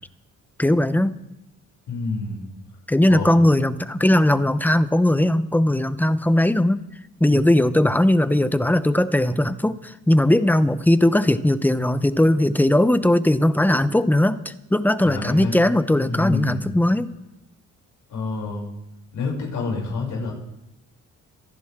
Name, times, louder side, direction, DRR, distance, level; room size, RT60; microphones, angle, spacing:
voice 1, 0.6-1.1 2.9-6.8 7.2-14.4 14.7-17.1, left 1 dB, 5° left, 13 dB, 0.8 m, -19 dB
voice 2, 1.9-2.4 3.1-3.3 15.0-15.6 16.0-16.8 18.1-18.7 19.1-20.3, left 3 dB, 75° left, -2 dB, 6.9 m, -28 dB
26.5 x 11.0 x 3.7 m, 0.87 s
cardioid pair, 90°, 30 cm